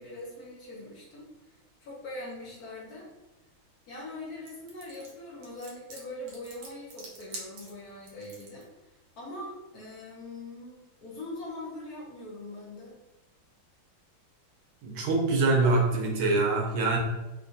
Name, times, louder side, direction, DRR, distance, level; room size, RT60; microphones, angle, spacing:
voice 1, 0.0-3.1 3.9-13.0, left 1 dB, 65° left, -5 dB, 1.0 m, -42 dB
sound 1, 4.5-8.6, right 2 dB, 65° right, 1.2 m, -45 dB
voice 2, 14.8-17.0, right 3 dB, 80° right, 0 dB, 1.5 m, -24 dB
3.7 x 2.2 x 2.6 m, 0.99 s
omnidirectional pair, 2.2 m